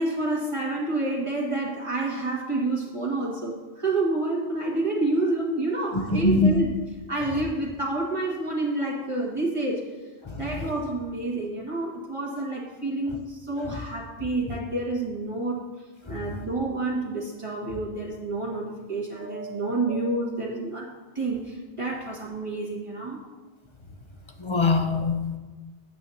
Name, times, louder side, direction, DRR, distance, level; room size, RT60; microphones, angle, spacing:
voice 1, 0.0-6.7 7.1-9.9 10.4-15.6 16.1-20.9 21.2-23.2, right 2 dB, 25° right, -4 dB, 1.9 m, -28 dB
voice 2, 6.1-6.5 10.2-10.6 16.1-16.4 19.2-20.0 24.4-25.4, left 3 dB, 30° left, 4 dB, 0.6 m, -25 dB
10.5 x 8.7 x 2.8 m, 1.2 s
omnidirectional pair, 1.1 m